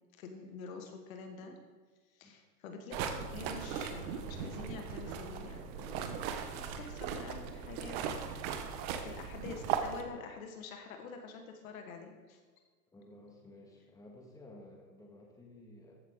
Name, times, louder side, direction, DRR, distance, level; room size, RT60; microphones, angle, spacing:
voice 1, 0.2-1.6 2.1-8.2 9.0-12.4, left 5 dB, 55° left, 4 dB, 1.8 m, -47 dB
sound 1, 2.9-10.0, right 7 dB, 35° right, 1.2 m, -38 dB
voice 2, 12.9-16.0, left 1 dB, 5° left, -1 dB, 2.0 m, -54 dB
14.5 x 8.2 x 3.9 m, 1.4 s
hypercardioid pair, 115°, 50 cm